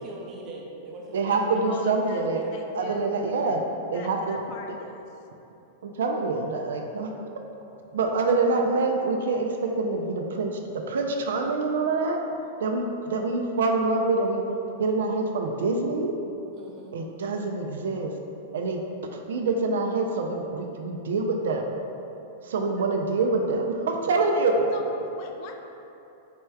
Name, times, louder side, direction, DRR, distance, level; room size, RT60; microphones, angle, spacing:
voice 1, 0.0-1.6 2.3-2.6 16.5-16.9, right 2 dB, 40° right, -2 dB, 0.7 m, -41 dB
voice 2, 1.1-2.4 2.8-3.6 3.9-4.4 5.8-7.1 7.9-10.6 10.9-12.2 12.6-14.4 14.8-16.1 16.9-18.1 18.5-18.8 19.3-21.7 22.4-24.7, right 3 dB, 75° right, 2 dB, 0.3 m, -25 dB
voice 3, 1.7-3.2 3.9-5.1 24.7-25.6, left 3 dB, 50° left, 3 dB, 0.4 m, -42 dB
4.3 x 3.2 x 2.2 m, 2.9 s
hypercardioid pair, 105°, 0 cm